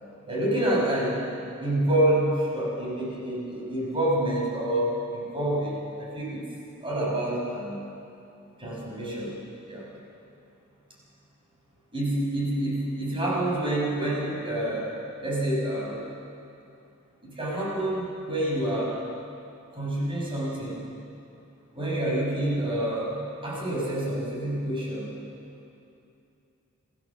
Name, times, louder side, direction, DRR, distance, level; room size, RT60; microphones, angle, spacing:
voice 1, 0.3-1.3 1.6-6.5 6.8-7.8 8.6-9.3 9.7-9.9 11.9-14.9 15.2-16.0 17.2-19.0 19.7-20.8 21.7-23.1 23.4-25.1, right 1 dB, 25° right, -4 dB, 5.8 m, -27 dB
26.5 x 15.0 x 7.3 m, 2.7 s
head